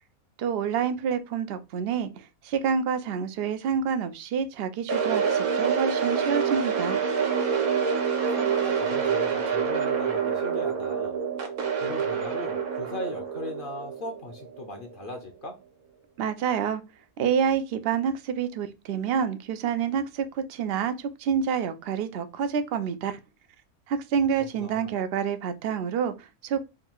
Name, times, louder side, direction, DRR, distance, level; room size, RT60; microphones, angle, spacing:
voice 1, 0.4-7.0 16.2-16.8 17.2-23.2 23.9-26.6, right 7 dB, 65° right, 0.6 m, -28 dB
sound 1, 4.9-14.9, right 6 dB, 85° right, 1.4 m, -27 dB
voice 2, 8.4-11.2 11.8-15.6 24.5-24.9, left 2 dB, 50° left, 0.7 m, -39 dB
3.7 x 2.3 x 4.3 m
omnidirectional pair, 1.5 m